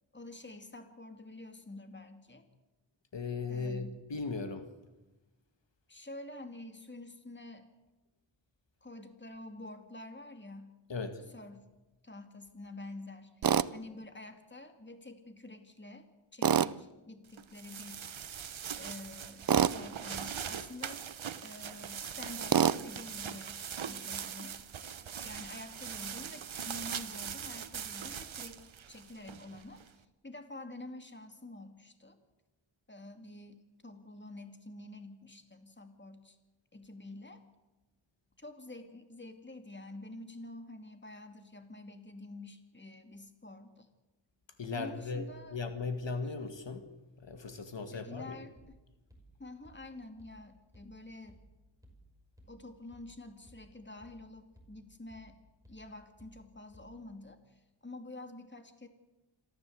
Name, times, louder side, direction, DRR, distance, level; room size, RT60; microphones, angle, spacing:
voice 1, 0.1-2.4 3.5-4.0 5.9-7.7 8.8-10.7 11.3-11.7 12.0-16.1 16.3-18.0 18.7-21.1 21.4-24.6 25.2-32.2 32.9-36.4 36.7-37.4 38.4-43.9 44.7-45.6 47.9-48.8 49.4-51.4 52.5-55.4 55.7-58.9, left 2 dB, 25° left, 7 dB, 2.4 m, -48 dB
voice 2, 3.1-4.7 10.9-11.2 44.6-45.3 45.5-46.8 47.2-48.4, left 4 dB, 65° left, 7 dB, 2.1 m, -37 dB
Tools, 13.4-13.7 16.4-16.7 19.5-19.8 22.5-22.8, right 8 dB, 50° right, 0.6 m, -25 dB
sound 1, 17.3-29.9, right 8 dB, 75° right, 1.1 m, -41 dB
sound 2, 48.6-57.2, right 1 dB, 5° right, 5.9 m, -61 dB
27.0 x 14.0 x 7.9 m, 1.1 s
wide cardioid pair, 70°, 48 cm